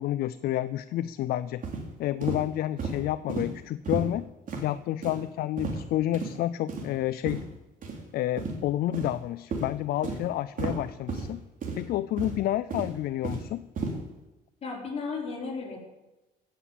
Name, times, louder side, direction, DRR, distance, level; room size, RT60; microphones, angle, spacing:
voice 1, 0.0-1.6 2.0-4.3 4.6-7.4 8.1-11.4 11.8-13.6, left 13 dB, 65° left, 15 dB, 0.5 m, -29 dB
sound 1, 1.6-1.8 2.2-2.4 2.8-3.0 3.3-3.5 3.9-4.1 4.5-4.6 5.0-5.2 5.6-5.8 6.1-6.3 6.7-6.9 7.2-7.4 7.8-8.0 8.4-8.5 8.9-9.2 9.5-9.7 10.0-10.2 10.6-10.7 11.1-11.3 11.6-11.8 12.2-12.4 12.7-13.5 13.8-13.9, right 4 dB, 50° right, 3.7 m, -32 dB
voice 2, 14.6-15.8, left 4 dB, 40° left, -1 dB, 4.2 m, -34 dB
17.0 x 7.4 x 7.3 m, 1.0 s
cardioid pair, 110°, 17 cm